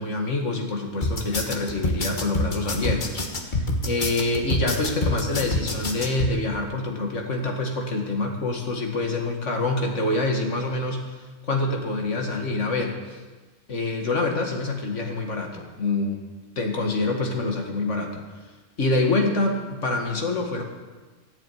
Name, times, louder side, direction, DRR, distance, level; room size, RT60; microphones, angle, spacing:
voice 1, 0.0-11.0 11.5-13.2 13.7-16.2 16.6-18.2 18.8-20.6, left 2 dB, 70° left, 2 dB, 2.3 m, -26 dB
sound 1, 1.0-6.3, left 2 dB, 40° left, 1.4 m, -26 dB
14.5 x 7.4 x 9.2 m, 1.3 s
omnidirectional pair, 1.3 m